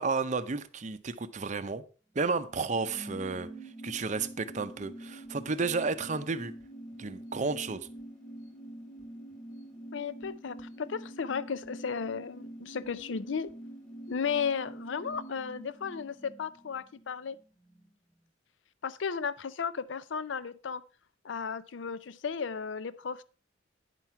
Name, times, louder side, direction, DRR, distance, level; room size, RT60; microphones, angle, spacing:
voice 1, 0.0-1.8 2.1-3.5 3.8-6.5 7.0-7.9, right 4 dB, 40° right, 0.6 m, -32 dB
sound 1, 2.4-17.4 17.7-17.8, right 1 dB, 5° left, 1.4 m, -46 dB
voice 2, 9.9-13.5 14.1-17.4 18.8-20.8 21.2-23.2, left 6 dB, 70° left, 0.5 m, -34 dB
9.9 x 5.8 x 4.6 m
head